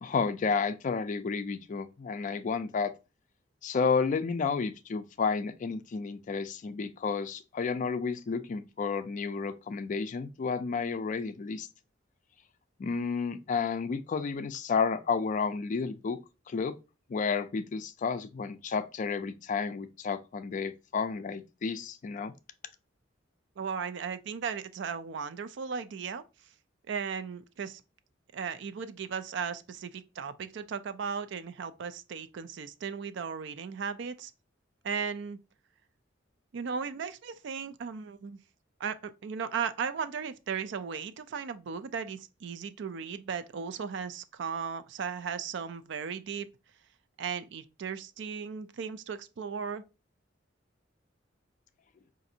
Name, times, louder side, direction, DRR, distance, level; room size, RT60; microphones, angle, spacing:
voice 1, 0.0-2.9 3.6-11.7 12.8-16.2 16.5-16.7 17.1-22.3, left 5 dB, 40° left, 0.3 m, -31 dB
voice 2, 23.6-26.2 26.9-27.8 28.3-34.3 34.8-35.4 36.5-38.4 38.8-46.5 47.2-49.8, right 6 dB, 65° right, 0.4 m, -36 dB
4.9 x 2.6 x 2.7 m
head